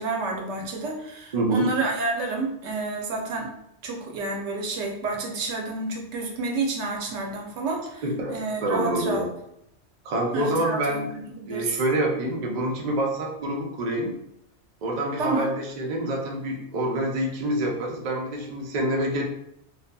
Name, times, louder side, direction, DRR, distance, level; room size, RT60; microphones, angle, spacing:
voice 1, 0.0-3.5 3.8-8.0 8.3-9.2 10.3-11.7 15.2-15.5, right 3 dB, 90° right, 1 dB, 0.9 m, -29 dB
voice 2, 1.3-1.7 8.0-9.3 10.0-11.1 11.5-14.1 14.8-19.2, right 1 dB, 50° right, 0 dB, 0.5 m, -27 dB
2.6 x 2.4 x 2.2 m, 0.78 s
omnidirectional pair, 1.2 m